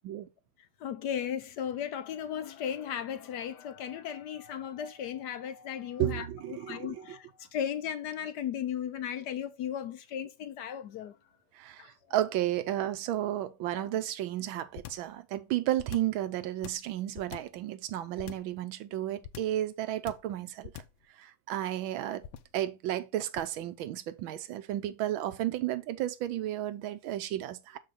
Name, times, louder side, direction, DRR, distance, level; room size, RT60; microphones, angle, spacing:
voice 1, 0.8-11.1 11.8-11.9 13.7-13.9, left 9 dB, 70° left, 1.1 m, -36 dB
voice 2, 6.0-7.0 11.6-20.7 21.2-22.3 22.5-27.8, right 13 dB, 90° right, 1.5 m, -33 dB
sound 1, 14.7-15.1 15.8-16.2 16.6-17.6 18.2-18.6 19.2-19.6 20.1-20.4 20.6-21.0 22.2-22.6 23.4-23.6, left 11 dB, 85° left, 1.4 m, -44 dB
6.6 x 4.7 x 4.1 m
omnidirectional pair, 2.2 m